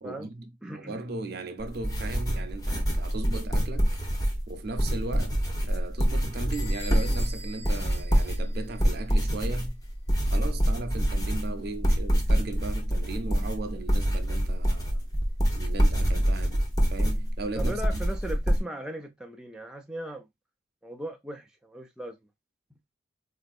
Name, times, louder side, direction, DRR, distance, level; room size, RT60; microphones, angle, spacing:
voice 1, 0.0-4.0 4.5-9.8 10.2-15.1 15.5-18.0, right 3 dB, 55° right, 0.5 m, -37 dB
voice 2, 0.6-1.0 17.6-20.2 20.8-22.2, right 1 dB, 5° right, 0.3 m, -38 dB
sound 1, 1.6-18.6, equal, 20° left, 0.8 m, -26 dB
Bell / Door, 6.5-9.0, left 2 dB, 60° left, 1.1 m, -45 dB
4.0 x 2.5 x 2.3 m
head